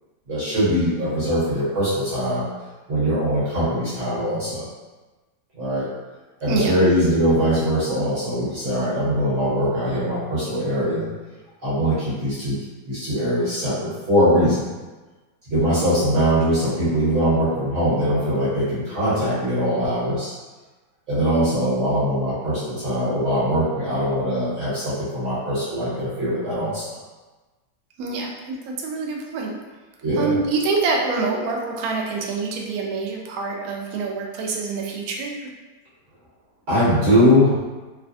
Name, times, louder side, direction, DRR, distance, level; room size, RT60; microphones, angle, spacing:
voice 1, 0.3-2.4 2.9-4.7 5.5-5.9 6.4-11.1 11.6-12.6 12.9-14.6 15.5-20.3 21.1-26.9 30.0-30.4 36.7-37.6, equal, 45° right, -11 dB, 1.2 m, -21 dB
voice 2, 28.0-29.5 30.2-35.5, right 4 dB, 75° right, 0 dB, 0.8 m, -26 dB
3.1 x 2.1 x 2.6 m, 1.2 s
omnidirectional pair, 2.0 m